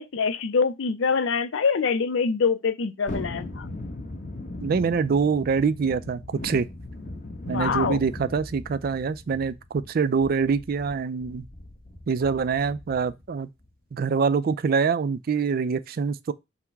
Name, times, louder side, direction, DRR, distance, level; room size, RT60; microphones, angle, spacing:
voice 1, 0.0-3.7 7.5-8.0, left 5 dB, 75° left, 0.5 m, -25 dB
Thunderstorm, 3.1-13.3 13.6-13.7, left 2 dB, 40° left, 1.1 m, -39 dB
voice 2, 4.6-6.7 7.5-11.5 12.1-13.5 13.9-16.3, right 5 dB, 50° right, 0.4 m, -25 dB
5.6 x 2.1 x 4.5 m
head